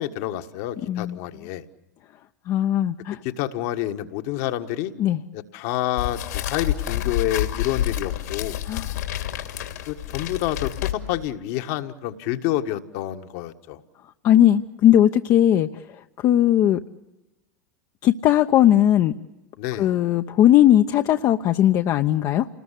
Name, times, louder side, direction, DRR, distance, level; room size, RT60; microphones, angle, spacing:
voice 1, 0.0-1.6 3.2-4.9 5.3-8.6 9.9-13.8 19.6-19.9, left 13 dB, 60° left, 7 dB, 1.6 m, -28 dB
voice 2, 0.9-1.2 2.5-3.2 5.0-5.2 8.6-9.0 14.2-16.8 18.0-19.1 19.8-22.5, left 11 dB, 40° left, 6 dB, 0.9 m, -18 dB
sound 1, 6.0-11.3, left 12 dB, 75° left, 2.8 m, -28 dB
29.0 x 20.0 x 8.4 m, 1.0 s
hypercardioid pair, 95°, 9 cm